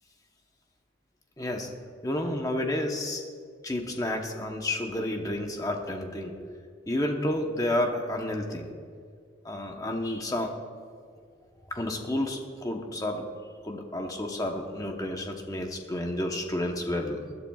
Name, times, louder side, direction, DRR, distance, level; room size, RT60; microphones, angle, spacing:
voice 1, 1.4-1.7 2.0-3.2 3.6-6.6 6.9-8.7 9.4-10.5 11.7-13.3 13.6-17.2, left 1 dB, 20° left, 3 dB, 1.0 m, -30 dB
21.0 x 12.0 x 2.4 m, 2.2 s
head